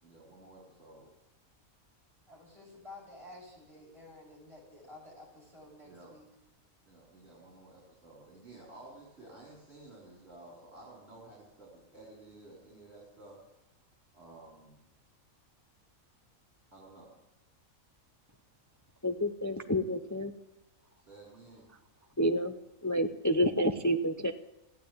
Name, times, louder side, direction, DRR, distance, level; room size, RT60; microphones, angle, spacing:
voice 1, 0.0-1.1 5.8-6.1 6.8-13.4 14.1-14.8 16.7-17.1 21.0-21.7, right 2 dB, 50° right, -4 dB, 4.6 m, -53 dB
voice 2, 2.3-6.2, left 2 dB, 20° right, -5 dB, 7.8 m, -51 dB
voice 3, 19.0-20.3 22.2-22.5 22.8-24.3, equal, 25° left, 8 dB, 0.4 m, -29 dB
15.0 x 10.5 x 8.6 m, 0.94 s
omnidirectional pair, 1.5 m